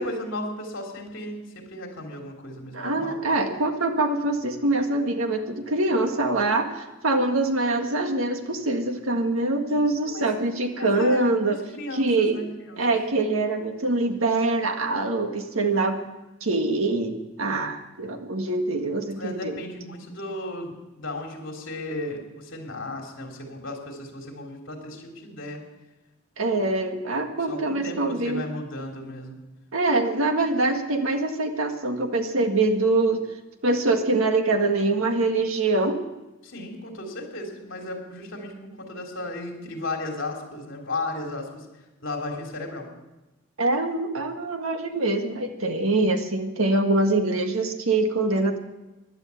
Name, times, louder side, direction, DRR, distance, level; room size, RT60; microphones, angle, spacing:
voice 1, 0.0-3.2 10.0-10.2 10.8-12.8 17.5-17.8 19.1-25.6 27.5-29.4 36.4-41.7 42.0-42.9, left 2 dB, 65° left, 1 dB, 3.2 m, -35 dB
voice 2, 2.7-11.6 11.9-12.4 12.8-16.0 16.4-19.6 26.4-28.4 29.7-33.2 33.6-36.0 43.6-48.6, right 2 dB, 85° right, 5 dB, 1.7 m, -24 dB
16.5 x 11.0 x 7.0 m, 1.0 s
head